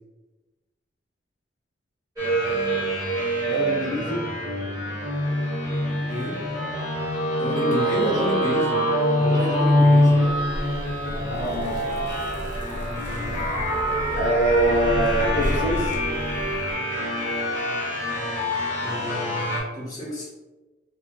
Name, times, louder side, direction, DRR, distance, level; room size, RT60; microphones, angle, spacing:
sound 1, 2.2-19.6, equal, 20° right, 1.0 m, -24 dB
voice 1, 3.4-4.2 7.9-8.1 11.3-12.2 14.1-16.0, equal, 70° left, -3 dB, 0.7 m, -26 dB
voice 2, 6.1-6.4 7.4-10.4 18.8-20.3, equal, 20° left, -6 dB, 1.0 m, -29 dB
Zipper (clothing), 10.1-16.7, equal, 45° right, 0.7 m, -33 dB
2.4 x 2.1 x 3.8 m, 1.1 s
head